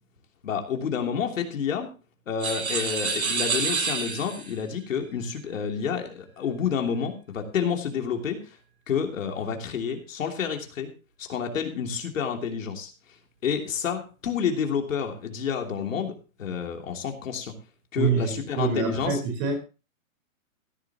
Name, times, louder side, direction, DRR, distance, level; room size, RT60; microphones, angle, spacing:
voice 1, 0.4-1.9 2.3-8.4 8.9-10.9 11.2-12.9 13.4-16.1 16.4-17.5 17.9-19.2, left 7 dB, 65° left, 3 dB, 3.1 m, -29 dB
sound 1, 2.4-4.6, right 4 dB, 90° right, 7.9 m, -28 dB
voice 2, 17.9-19.6, right 5 dB, 30° right, 4 dB, 4.6 m, -26 dB
17.0 x 12.0 x 2.9 m, 0.32 s
hypercardioid pair, 165°, 42 cm